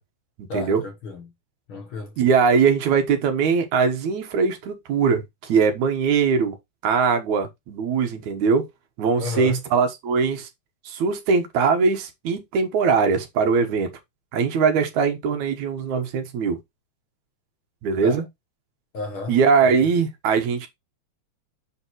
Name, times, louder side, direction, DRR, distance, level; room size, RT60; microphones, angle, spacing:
voice 1, 0.5-1.3 1.7-2.2 9.2-9.6 18.0-18.2 18.9-19.4, left 3 dB, 55° left, 1.7 m, -32 dB
voice 2, 2.2-6.6 6.8-8.7 9.0-10.5 10.8-13.9 14.3-16.6 17.8-18.2 19.3-20.7, right 5 dB, 75° right, 2.7 m, -21 dB
7.2 x 5.9 x 3.1 m
omnidirectional pair, 3.5 m